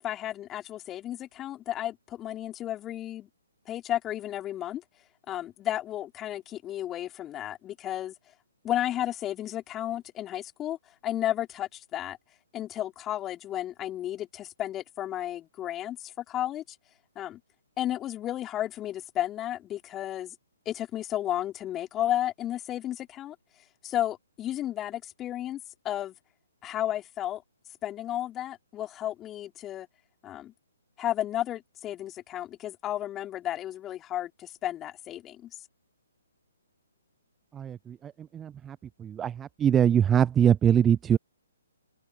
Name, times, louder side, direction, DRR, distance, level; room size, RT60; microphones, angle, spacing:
voice 1, 0.0-3.3 3.7-4.8 5.3-8.1 8.6-10.8 11.0-12.2 12.5-16.6 17.2-17.4 17.8-20.3 20.7-23.4 23.8-26.1 26.6-27.4 27.8-29.9 30.2-30.5 31.0-35.5, left 12 dB, 20° left, 3.6 m, -33 dB
voice 2, 37.5-38.8 39.0-41.2, right 9 dB, 15° right, 0.4 m, -23 dB
figure-of-eight pair, 130°, 0 cm